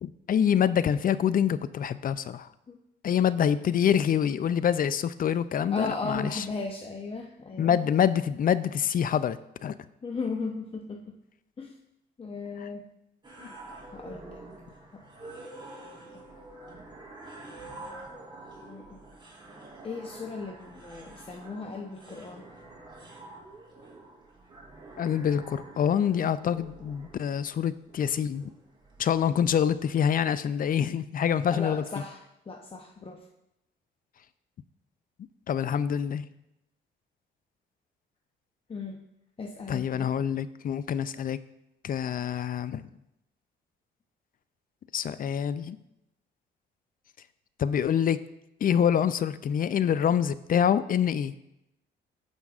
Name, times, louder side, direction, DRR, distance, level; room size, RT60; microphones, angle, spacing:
voice 1, 0.0-2.5 3.0-6.4 7.6-9.7 13.4-13.5 25.0-28.5 29.0-31.8 35.5-36.3 39.7-41.4 41.8-42.8 44.9-45.8 47.6-48.2 48.6-51.3, left 8 dB, 45° left, 15 dB, 0.4 m, -26 dB
voice 2, 5.7-7.8 10.0-11.2 11.6-11.8 12.2-12.9 13.9-14.4 16.1-16.3 18.6-19.0 19.8-22.5 31.5-32.2 32.5-33.3 38.7-39.0 39.4-40.1, left 3 dB, 30° left, 1 dB, 0.8 m, -36 dB
sound 1, 13.2-30.2, right 2 dB, 25° right, 2.8 m, -47 dB
15.0 x 5.4 x 2.4 m, 0.86 s
cardioid pair, 90°, 20 cm